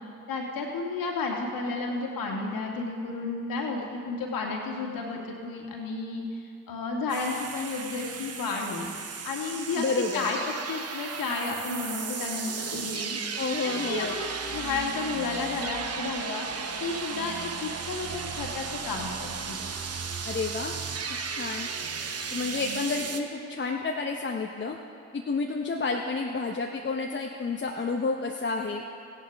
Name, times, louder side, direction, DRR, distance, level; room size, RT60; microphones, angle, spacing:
voice 1, 0.3-8.9 9.2-9.8 10.1-10.4 10.7-13.2 13.6-19.6, left 3 dB, 60° left, 0 dB, 2.0 m, -32 dB
sound 1, 7.1-23.2, right 5 dB, 40° right, 1.0 m, -35 dB
voice 2, 9.8-10.3 13.4-14.2 20.2-20.8 21.4-21.7 22.3-24.8 25.1-28.8, left 4 dB, 30° left, 1 dB, 0.9 m, -30 dB
16.0 x 11.0 x 3.5 m, 2.5 s
hypercardioid pair, 45°, 38 cm